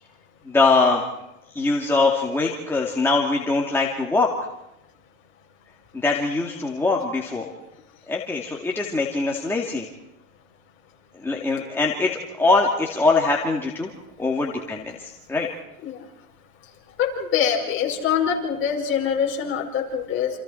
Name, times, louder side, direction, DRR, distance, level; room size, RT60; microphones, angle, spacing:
voice 1, 0.5-1.0 1.5-4.3 5.9-7.5 8.1-9.9 11.1-13.9 14.2-15.5, left 3 dB, 5° left, -2 dB, 2.3 m, -22 dB
voice 2, 17.0-20.3, left 8 dB, 30° left, 0 dB, 5.5 m, -24 dB
29.0 x 28.0 x 4.5 m, 0.87 s
supercardioid pair, 145°, 40 cm